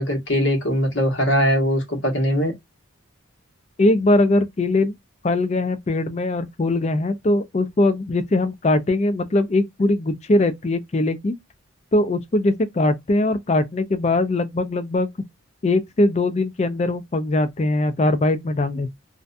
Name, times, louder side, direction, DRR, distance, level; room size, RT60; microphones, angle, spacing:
voice 1, 0.0-2.5, equal, 60° left, 1.1 m, -21 dB
voice 2, 3.8-4.9 5.2-11.4 11.9-15.1 15.6-18.9, left 2 dB, 30° left, 0.4 m, -21 dB
2.5 x 2.2 x 2.5 m
head